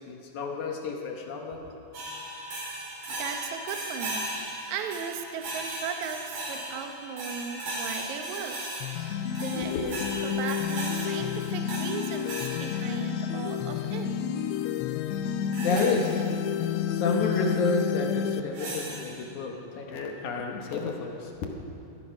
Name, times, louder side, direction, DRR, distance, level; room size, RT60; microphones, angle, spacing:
voice 1, 0.0-1.6 9.1-9.2 9.7-9.8 15.6-16.2 16.9-21.5, left 4 dB, 65° left, 2 dB, 2.0 m, -30 dB
sound 1, 1.9-13.4 15.5-16.0 18.5-19.2, right 1 dB, 55° right, 5.1 m, -37 dB
voice 2, 3.2-8.9 9.3-14.1, right 6 dB, 85° right, 5 dB, 1.6 m, -37 dB
sound 2, 8.8-18.4, left 8 dB, 85° left, 2.7 m, -30 dB
18.0 x 13.0 x 5.6 m, 2.9 s
omnidirectional pair, 4.7 m